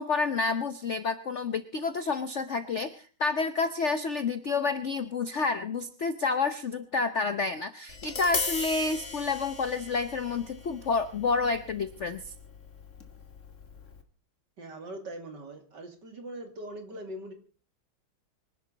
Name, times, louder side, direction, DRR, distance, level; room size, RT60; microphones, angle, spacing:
voice 1, 0.0-12.3, left 4 dB, 55° left, 11 dB, 0.8 m, -29 dB
Tap, 7.9-14.0, left 4 dB, 40° left, 2.1 m, -38 dB
voice 2, 14.6-17.3, right 1 dB, 55° right, 6 dB, 3.2 m, -41 dB
25.0 x 11.5 x 4.0 m, 0.37 s
omnidirectional pair, 2.2 m